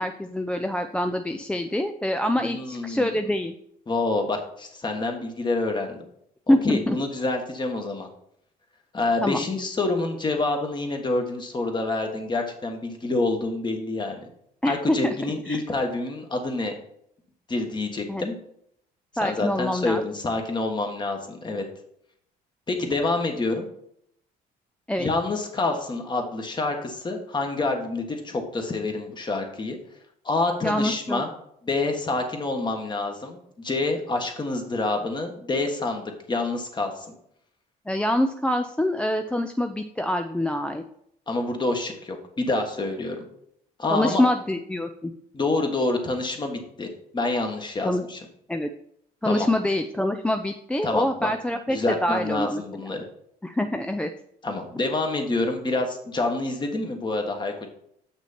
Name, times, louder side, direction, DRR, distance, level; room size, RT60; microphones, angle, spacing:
voice 1, 0.0-3.5 6.5-7.0 9.2-9.4 14.6-15.2 15.5-15.6 18.1-18.3 19.2-20.0 24.9-25.1 30.6-31.2 37.9-40.8 43.9-45.1 47.8-48.0 48.5-48.7 49.2-52.8 53.4-54.1, left 1 dB, 5° left, 6 dB, 0.4 m, -25 dB
voice 2, 2.4-3.1 3.9-6.0 6.5-8.1 8.9-14.2 14.6-16.7 17.5-18.3 19.2-21.6 22.7-23.7 25.0-29.8 30.2-31.3 31.6-37.0 41.3-43.2 43.8-44.2 45.3-48.2 49.2-49.5 50.8-51.3 51.7-53.0 54.4-57.7, left 2 dB, 25° left, 3 dB, 1.5 m, -27 dB
7.1 x 6.1 x 4.3 m, 0.72 s
cardioid pair, 110°, 17 cm